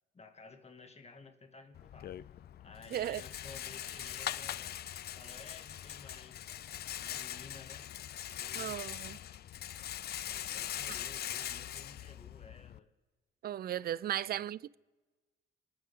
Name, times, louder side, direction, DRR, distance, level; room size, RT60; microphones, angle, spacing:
voice 1, 0.1-2.2 2.6-4.8 5.2-6.5 7.0-7.9 8.3-8.8 10.2-12.9 14.0-14.5, left 4 dB, 30° left, 2.0 m, -54 dB
Rattle, 1.7-12.8, left 11 dB, 55° left, 0.5 m, -42 dB
voice 2, 2.9-3.2 8.6-9.2 13.4-14.8, right 11 dB, 50° right, 0.4 m, -36 dB
29.0 x 10.0 x 3.7 m
cardioid pair, 90°, 20 cm